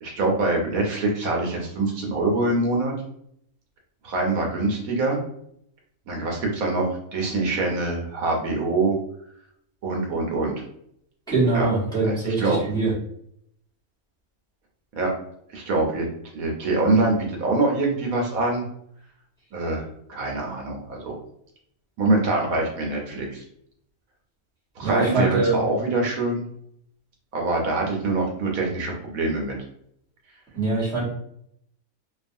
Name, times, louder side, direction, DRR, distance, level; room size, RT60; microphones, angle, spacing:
voice 1, 0.0-2.9 4.0-5.2 6.1-8.9 9.8-10.5 11.5-11.7 12.0-12.6 15.0-15.1 15.5-16.1 16.3-18.6 19.5-21.2 22.0-23.4 24.8-26.4 27.3-29.5, right 2 dB, 75° right, 0 dB, 1.1 m, -24 dB
voice 2, 11.3-12.9 24.8-25.6 30.5-31.0, right 3 dB, 5° left, -9 dB, 1.0 m, -23 dB
2.7 x 2.3 x 2.6 m, 0.71 s
omnidirectional pair, 1.5 m